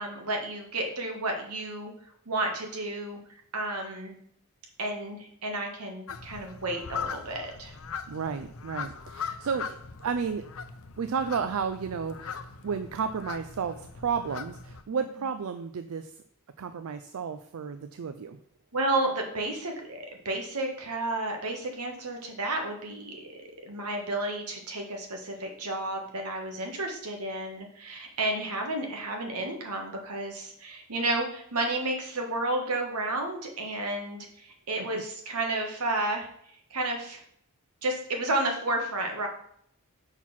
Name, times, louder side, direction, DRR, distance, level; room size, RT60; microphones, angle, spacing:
voice 1, 0.0-1.9 2.2-3.2 3.5-4.2 4.8-7.7 15.0-15.1 18.7-36.3 36.7-37.2 37.8-39.3, right 2 dB, 90° right, 2 dB, 1.5 m, -32 dB
sound 1, 6.1-14.8, left 6 dB, 65° left, 0.6 m, -40 dB
voice 2, 8.1-10.4 11.0-16.1 16.6-18.4, right 6 dB, 70° right, 9 dB, 0.4 m, -32 dB
5.8 x 4.6 x 5.8 m, 0.68 s
head